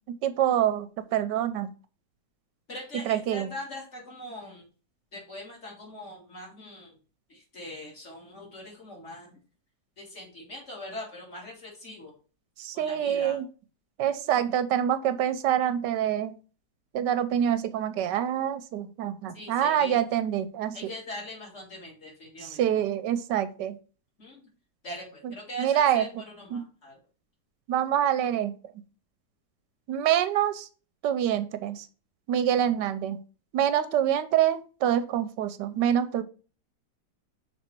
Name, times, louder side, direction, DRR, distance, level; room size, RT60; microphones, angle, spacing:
voice 1, 0.1-1.7 3.0-3.5 12.6-13.4 14.0-16.3 16.9-20.9 22.4-23.8 25.2-25.3 25.6-26.2 26.5-26.6 27.7-28.5 29.9-30.7 31.0-31.9 32.3-33.2 33.5-36.2, right 10 dB, 85° right, 11 dB, 1.3 m, -26 dB
voice 2, 2.7-4.7 5.1-7.0 7.3-9.3 10.0-12.1 12.7-13.4 19.3-20.0 20.7-22.6 24.2-24.4 24.8-27.0, left 1 dB, 40° left, -2 dB, 2.9 m, -41 dB
5.7 x 4.3 x 4.4 m, 0.36 s
omnidirectional pair, 1.9 m